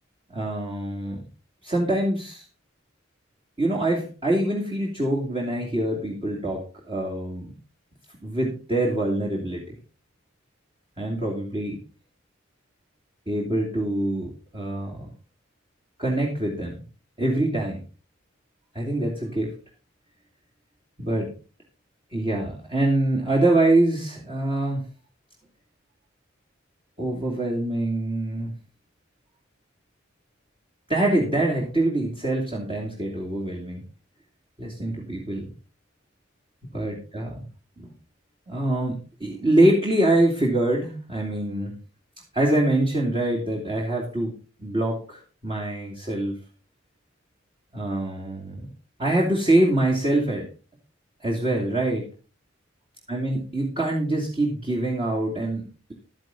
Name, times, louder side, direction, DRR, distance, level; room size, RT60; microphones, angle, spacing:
voice 1, 0.3-1.2 1.6-2.4 3.6-7.5 8.2-9.6 11.0-11.8 13.3-15.1 16.0-16.8 17.2-17.8 18.7-19.5 21.0-21.3 22.1-24.9 27.0-28.5 30.9-33.8 34.6-35.5 36.7-37.4 37.8-37.9 38.5-41.7 42.3-44.3 44.6-46.4 47.7-48.7 49.0-50.5 51.2-52.1 53.1-55.9, right 1 dB, 25° right, -3 dB, 2.6 m, -24 dB
12.5 x 10.5 x 3.9 m, 0.34 s
head